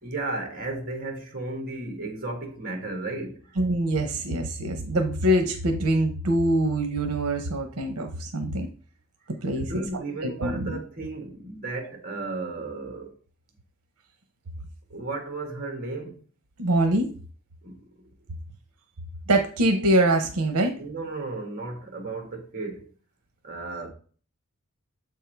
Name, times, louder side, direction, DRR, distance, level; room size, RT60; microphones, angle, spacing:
voice 1, 0.0-3.5 9.6-13.1 14.9-16.2 17.6-17.9 20.8-22.9 23.4-23.9, right 2 dB, 40° right, 1.5 m, -34 dB
voice 2, 3.6-8.7 9.4-9.7 10.2-10.8 16.6-17.1 19.3-20.7, right 1 dB, 80° right, 0.8 m, -24 dB
7.3 x 3.6 x 4.5 m
head